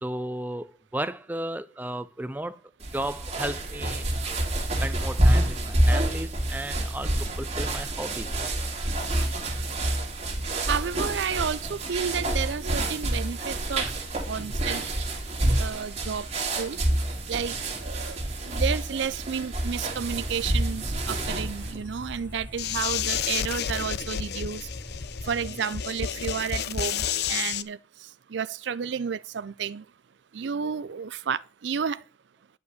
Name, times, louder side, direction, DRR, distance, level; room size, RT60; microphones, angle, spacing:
voice 1, 0.0-2.6 2.9-4.4 4.8-8.3 11.6-11.7 12.2-12.4, right 1 dB, 10° right, 0.5 m, -34 dB
sound 1, 2.8-21.8, right 1 dB, 35° right, 2.1 m, -28 dB
voice 2, 10.7-13.9 14.3-14.8 15.6-16.8 17.3-17.5 17.8-18.2 18.4-24.7 25.3-27.8 28.3-29.8 30.3-32.0, right 7 dB, 65° right, 0.4 m, -31 dB
sound 2, 19.9-25.5, left 1 dB, 10° left, 0.9 m, -41 dB
sound 3, 22.6-27.6, left 8 dB, 55° left, 0.6 m, -30 dB
10.0 x 5.2 x 8.1 m
head